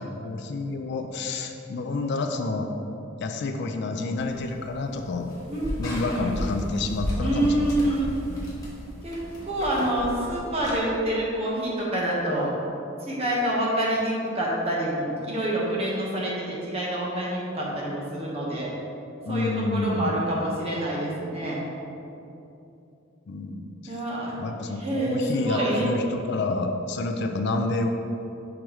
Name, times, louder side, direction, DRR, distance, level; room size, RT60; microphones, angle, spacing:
voice 1, 0.0-2.7 3.2-5.3 5.8-8.1 19.2-20.2 23.3-24.0 24.4-27.9, left 3 dB, 60° left, 5 dB, 0.4 m, -29 dB
sound 1, 4.2-10.8, left 1 dB, 20° left, 1.4 m, -35 dB
voice 2, 7.2-8.4 9.0-9.1 9.4-12.5 13.1-18.7 19.3-21.7 23.9-24.4 24.8-25.9, right 1 dB, 30° right, -5 dB, 1.2 m, -27 dB
6.1 x 5.1 x 3.1 m, 2.8 s
head